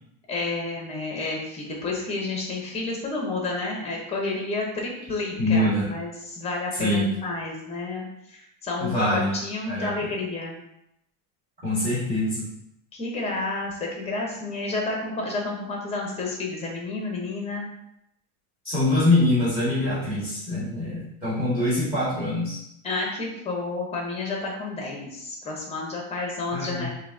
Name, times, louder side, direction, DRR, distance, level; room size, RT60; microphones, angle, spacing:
voice 1, 0.3-10.6 12.9-17.7 22.8-26.9, left 3 dB, 15° left, -1 dB, 0.8 m, -30 dB
voice 2, 5.4-5.9 6.7-7.1 8.8-9.3 9.7-10.1 11.6-12.5 18.6-22.6 26.5-26.9, left 1 dB, 15° right, -9 dB, 1.8 m, -24 dB
6.7 x 2.8 x 2.7 m, 0.80 s
supercardioid pair, 165°, 43 cm